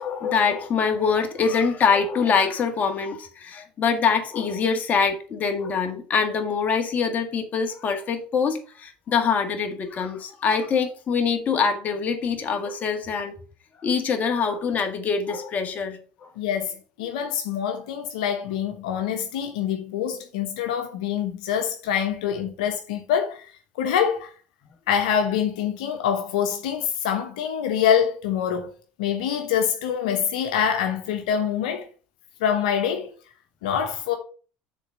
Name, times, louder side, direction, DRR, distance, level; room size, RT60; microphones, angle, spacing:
voice 1, 0.0-13.3 13.8-16.0, left 6 dB, 40° left, 1.8 m, -24 dB
voice 2, 16.4-23.5 23.7-24.3 24.9-28.7 29.0-31.9 32.4-33.1 33.6-34.1, left 8 dB, 85° left, 1.0 m, -25 dB
6.5 x 4.1 x 6.3 m
supercardioid pair, 85°, 4 cm